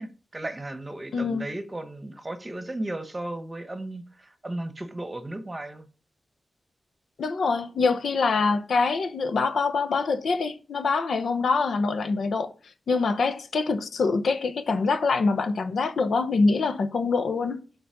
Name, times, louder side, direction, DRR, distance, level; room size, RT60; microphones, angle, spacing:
voice 1, 0.0-5.9, right 1 dB, 20° right, 1.0 m, -35 dB
voice 2, 1.1-1.5 7.2-12.5 12.9-17.6, left 4 dB, 80° left, 0.8 m, -25 dB
7.0 x 4.1 x 5.2 m
wide cardioid pair, 110°, 0 cm